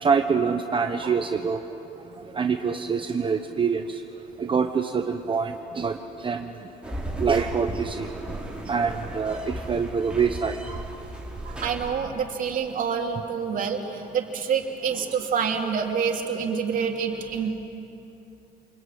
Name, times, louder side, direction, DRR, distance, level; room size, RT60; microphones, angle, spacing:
voice 1, 0.0-1.6 2.3-4.0 4.4-6.5 7.2-8.1 8.7-10.6, right 5 dB, 30° right, 6 dB, 1.1 m, -25 dB
sound 1, 6.8-11.9, right 1 dB, 5° right, 4.3 m, -35 dB
voice 2, 11.4-17.5, right 6 dB, 55° right, 2 dB, 3.2 m, -27 dB
28.0 x 21.5 x 9.4 m, 2.9 s
cardioid pair, 110°, 17 cm